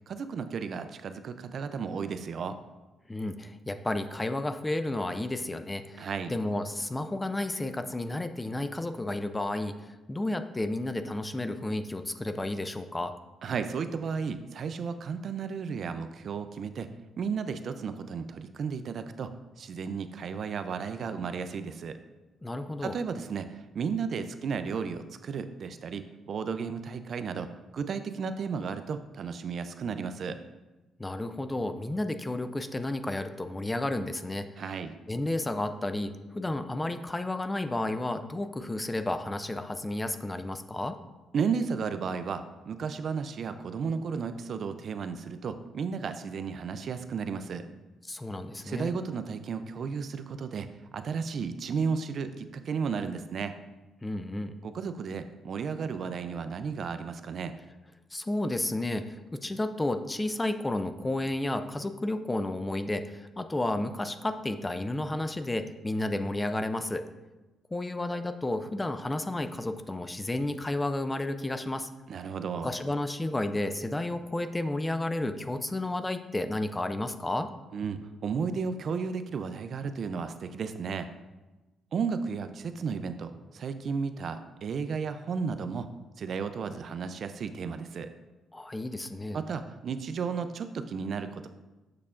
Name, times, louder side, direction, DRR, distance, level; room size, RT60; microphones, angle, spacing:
voice 1, 0.1-2.6 6.0-6.3 13.4-16.9 17.2-19.3 19.6-22.0 22.8-30.4 34.6-34.9 41.3-47.7 48.6-50.7 50.9-53.5 54.6-57.6 72.1-72.7 77.7-81.1 81.9-85.9 86.2-88.1 89.3-91.5, right 5 dB, 55° right, 10 dB, 0.4 m, -33 dB
voice 2, 3.1-13.1 22.4-23.0 31.0-34.6 35.1-41.0 48.0-48.9 54.0-54.5 58.1-67.0 67.7-71.9 72.6-77.5 88.5-89.4, left 2 dB, 15° left, 9 dB, 0.4 m, -32 dB
6.8 x 6.6 x 2.5 m, 1.1 s
cardioid pair, 90°, 0 cm